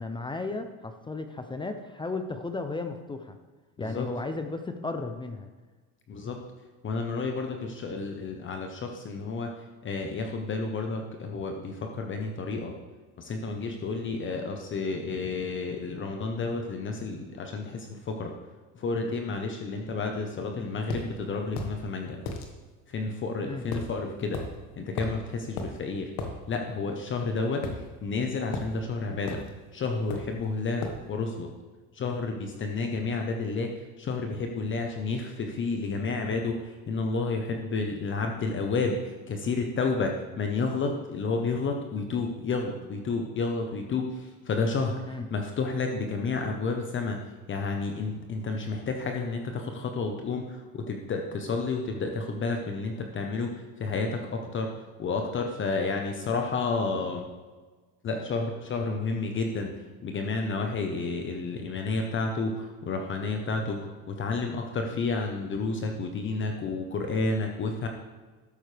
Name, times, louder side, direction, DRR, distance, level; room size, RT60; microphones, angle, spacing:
voice 1, 0.0-3.4 3.8-5.5 23.4-23.7 45.1-45.3, left 3 dB, 15° left, 7 dB, 0.5 m, -34 dB
voice 2, 6.1-6.4 6.8-9.5 9.8-12.8 13.2-18.3 18.7-22.2 22.9-24.4 24.8-26.1 26.5-29.4 29.7-31.5 31.9-33.7 34.0-47.2 47.5-57.2 58.0-59.7 60.0-67.9, left 3 dB, 30° left, 3 dB, 1.0 m, -31 dB
sound 1, 20.9-21.1 21.6-21.8 22.3-22.5 23.7-23.9 24.3-24.5 25.0-25.2 25.6-25.7 26.2-26.3 27.6-28.2 28.5-28.7 29.3-29.5 30.1-30.4 30.8-31.0, left 3 dB, 75° left, 1.7 m, -34 dB
12.5 x 8.8 x 3.4 m, 1.3 s
cardioid pair, 130°, 37 cm